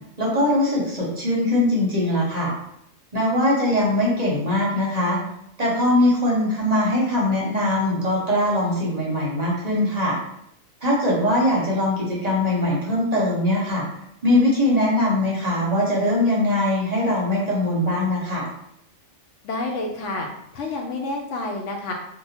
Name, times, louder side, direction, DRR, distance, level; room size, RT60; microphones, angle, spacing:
voice 1, 0.2-2.5 3.1-5.2 5.6-10.2 10.8-13.8 14.2-18.5, left 1 dB, 35° right, -4 dB, 0.8 m, -21 dB
voice 2, 19.4-20.3 20.5-21.9, left 2 dB, 70° left, 1 dB, 0.8 m, -29 dB
2.8 x 2.2 x 4.1 m, 0.76 s
omnidirectional pair, 1.4 m